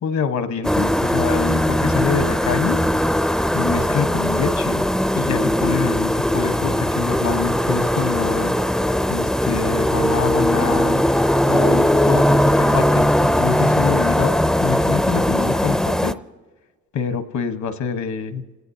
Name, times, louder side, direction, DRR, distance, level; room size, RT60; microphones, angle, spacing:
voice 1, 0.0-2.8 3.5-4.8 5.1-8.5 9.1-11.0 11.5-14.3 14.6-16.1 16.9-18.4, left 6 dB, 70° left, 9 dB, 1.2 m, -25 dB
sound 1, 0.6-16.1, equal, ahead, 0.5 m, -19 dB
29.5 x 18.0 x 2.8 m, 1.3 s
cardioid pair, 90°, 30 cm